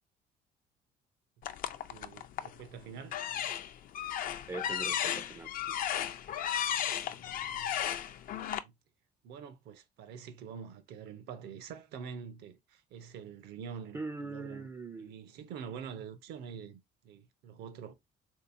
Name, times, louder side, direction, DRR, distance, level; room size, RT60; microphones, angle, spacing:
sound 1, 1.4-2.6 3.0-8.6, left 10 dB, 55° left, 0.4 m, -34 dB
voice 1, 1.9-3.2 7.1-7.8 8.5-8.7 9.2-14.7 15.0-17.9, right 7 dB, 80° right, 0.7 m, -46 dB
voice 2, 4.5-5.8 13.9-15.1, right 3 dB, 20° right, 0.3 m, -42 dB
3.4 x 2.8 x 2.5 m
cardioid pair, 110°, 17 cm